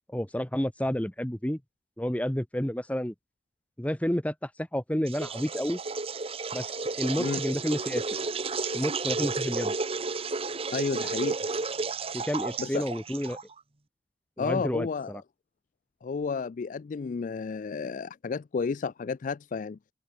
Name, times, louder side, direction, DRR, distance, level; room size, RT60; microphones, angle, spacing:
voice 1, 0.1-1.6 2.0-3.1 3.8-5.8 6.5-6.7 7.0-8.1 8.7-9.7 12.1-13.4 14.4-15.2, equal, 10° left, 1.1 m, -30 dB
sound 1, 5.1-13.6, right 4 dB, 30° right, 1.1 m, -32 dB
voice 2, 10.7-11.4 12.6-12.9 14.4-15.2 16.0-19.8, left 5 dB, 45° left, 0.3 m, -31 dB
head